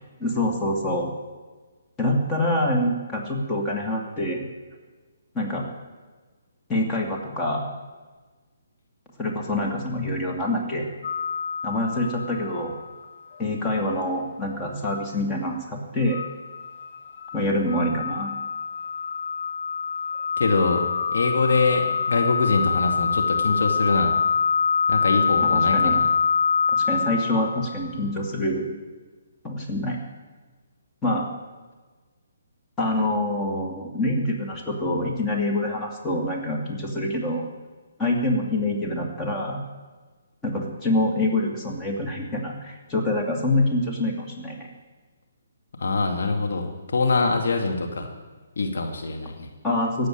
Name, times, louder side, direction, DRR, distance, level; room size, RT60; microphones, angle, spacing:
voice 1, 0.2-1.1 2.0-4.5 5.3-5.6 6.7-7.6 9.2-10.9 11.6-12.7 13.4-16.2 17.3-18.4 25.5-26.0 26.7-28.7 29.4-30.0 31.0-31.3 32.8-37.4 38.0-39.6 40.4-44.7 49.6-50.1, left 1 dB, 15° left, 0 dB, 2.6 m, -26 dB
sound 1, 11.0-12.9 13.3-13.4 16.1-28.0, left 5 dB, 40° left, 0.8 m, -25 dB
voice 2, 20.4-24.2 24.9-26.1 45.7-48.1 48.6-49.5, left 3 dB, 60° left, 2 dB, 2.3 m, -24 dB
16.5 x 8.1 x 9.9 m, 1.3 s
figure-of-eight pair, 135°, 0 cm